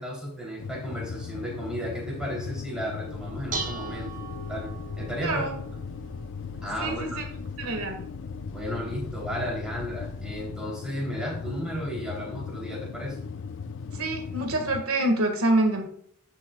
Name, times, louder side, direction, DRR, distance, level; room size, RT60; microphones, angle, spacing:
voice 1, 0.0-4.1 4.5-5.5 6.6-7.2 8.5-13.3, equal, 5° right, -3 dB, 3.2 m, -34 dB
sound 1, 0.6-14.8, left 5 dB, 60° left, 0.4 m, -38 dB
Dishes pots and pans, 3.1-10.5, right 3 dB, 40° right, 1.0 m, -41 dB
voice 2, 5.2-5.6 6.8-8.0 13.9-15.8, right 2 dB, 85° right, 4 dB, 1.9 m, -26 dB
11.5 x 6.3 x 2.4 m, 0.65 s
head